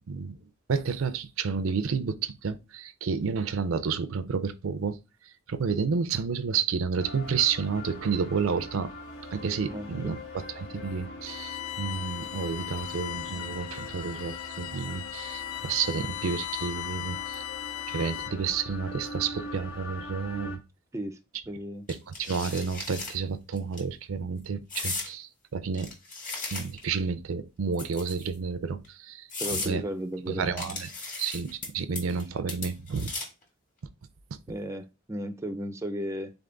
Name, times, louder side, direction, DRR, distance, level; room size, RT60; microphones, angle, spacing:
voice 1, 0.1-0.4 0.7-5.0 5.5-8.9 9.3-17.4 17.9-20.6 22.1-25.9 26.5-29.8 30.3-30.9 31.2-33.1 34.3-34.4, right 6 dB, 80° right, 0.5 m, -30 dB
sound 1, 7.0-20.6, left 2 dB, 70° left, 1.1 m, -42 dB
voice 2, 9.7-10.2 20.9-21.2 21.5-21.9 29.4-30.8 34.5-36.3, equal, 15° right, 0.4 m, -35 dB
Bowed string instrument, 11.3-18.5, left 14 dB, 85° left, 0.3 m, -37 dB
sound 2, 21.9-23.1 23.6-23.8 24.7-25.1 25.7-26.9 27.7-28.3 28.8-28.9 29.3-29.7 30.6-31.7 31.9-32.2 32.5-33.4, left 3 dB, 40° left, 1.7 m, -36 dB
3.9 x 3.5 x 3.7 m
head